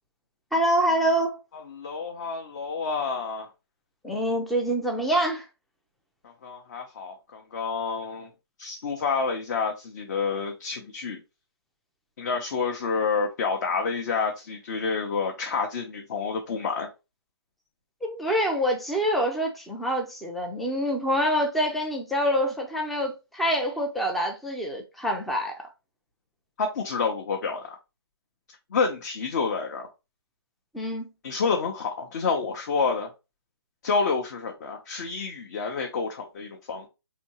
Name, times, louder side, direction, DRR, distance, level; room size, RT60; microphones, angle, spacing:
voice 1, 0.5-1.4 4.0-5.4 18.0-25.5 30.7-31.1, equal, ahead, 0.4 m, -26 dB
voice 2, 1.7-3.5 6.2-8.3 8.6-11.2 12.2-16.9 26.6-27.7 28.7-29.9 31.2-33.1 33.8-36.9, left 5 dB, 45° left, 0.7 m, -28 dB
4.3 x 2.8 x 2.9 m
hypercardioid pair, 145°, 14 cm